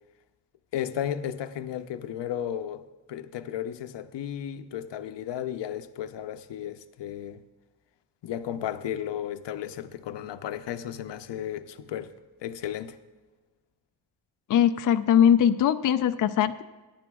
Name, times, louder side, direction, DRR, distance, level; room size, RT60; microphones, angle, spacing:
voice 1, 0.7-2.8 3.1-7.4 8.2-12.1 12.4-13.0, left 10 dB, 80° left, 0.7 m, -34 dB
voice 2, 14.5-16.6, left 9 dB, 50° left, 0.5 m, -21 dB
20.5 x 10.5 x 2.3 m
cardioid pair, 115°, 42 cm